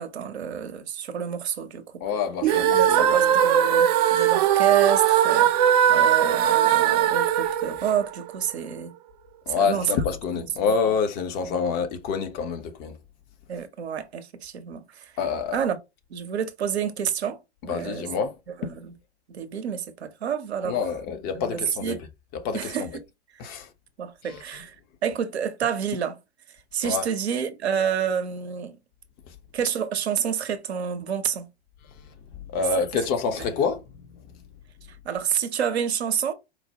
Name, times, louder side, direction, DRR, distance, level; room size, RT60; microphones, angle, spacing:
voice 1, 0.0-1.8 2.6-5.5 5.9-8.9 9.6-10.1 10.7-10.8 11.4-11.6 13.5-15.1 15.5-15.8 16.1-18.1 18.6-18.9 19.3-20.8 21.5-22.0 22.5-22.9 24.0-24.8 25.0-26.2 26.7-28.8 29.5-31.5 33.4-33.5 35.0-36.3, right 8 dB, 70° right, 0.7 m, -28 dB
voice 2, 2.0-3.1 9.5-13.0 15.2-15.6 17.6-18.3 18.6-18.7 20.6-22.0 22.3-22.9 23.4-23.7 24.3-24.4 26.8-27.1 32.5-33.8, left 5 dB, 30° left, 0.6 m, -27 dB
sound 1, 2.4-8.6, right 10 dB, 40° right, 0.4 m, -20 dB
4.3 x 2.1 x 2.7 m
figure-of-eight pair, 100°, 34 cm